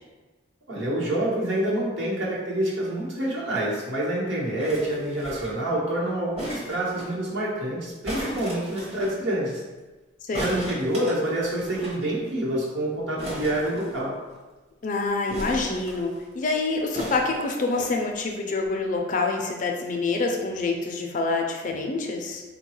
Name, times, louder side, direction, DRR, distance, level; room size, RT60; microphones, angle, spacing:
voice 1, 0.7-9.6 10.3-14.1, right 1 dB, 65° right, -5 dB, 1.0 m, -27 dB
sound 1, 4.6-5.7 6.4-7.1 8.0-9.1 10.3-12.0 12.3-12.4 12.6-12.8 13.2-14.4 15.3-16.2 16.9-17.9 18.6-18.7, right 1 dB, 30° right, 0.8 m, -36 dB
voice 2, 10.2-10.7 14.8-22.4, left 3 dB, 40° left, 2 dB, 0.4 m, -27 dB
3.8 x 2.2 x 3.0 m, 1.2 s
head